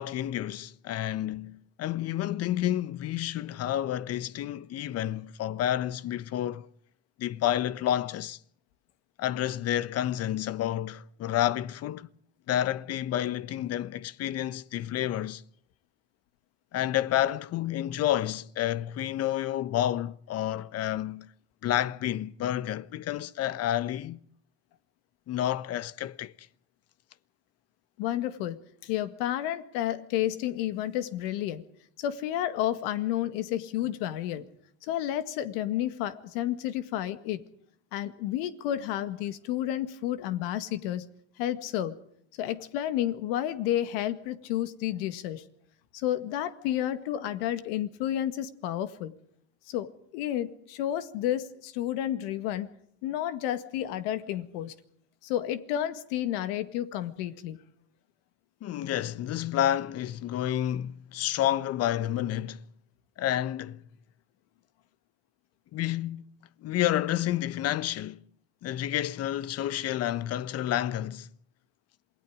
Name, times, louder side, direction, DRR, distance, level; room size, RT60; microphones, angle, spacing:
voice 1, 0.0-6.7 7.2-8.4 9.2-12.1 12.5-15.4 16.7-21.3 21.6-24.2 25.3-26.3 58.6-62.6 63.2-63.8 65.7-66.3 66.6-68.2 68.6-71.3, left 12 dB, 55° left, 1.2 m, -30 dB
voice 2, 28.0-31.6 32.0-34.5 34.8-37.4 37.9-41.1 41.4-42.0 42.4-45.4 45.9-49.1 49.7-52.7 53.0-54.7 55.2-57.6, left 12 dB, 80° left, 1.9 m, -31 dB
27.5 x 20.5 x 5.0 m
hypercardioid pair, 75°, 29 cm